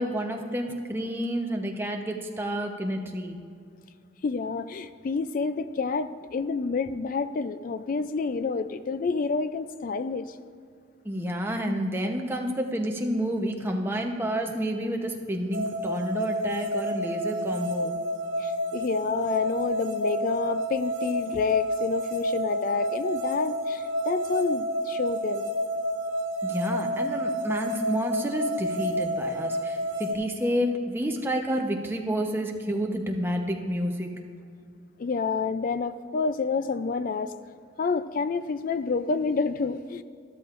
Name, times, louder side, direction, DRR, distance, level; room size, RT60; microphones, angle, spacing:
voice 1, 0.0-3.4 11.0-17.9 26.4-34.1, equal, 10° right, 2 dB, 0.8 m, -29 dB
voice 2, 4.2-10.4 18.4-25.5 35.0-37.3 37.8-40.0, left 4 dB, 45° left, 13 dB, 0.3 m, -28 dB
sound 1, 15.5-30.1, equal, 80° right, 1.1 m, -30 dB
12.5 x 12.5 x 2.5 m, 2.2 s
head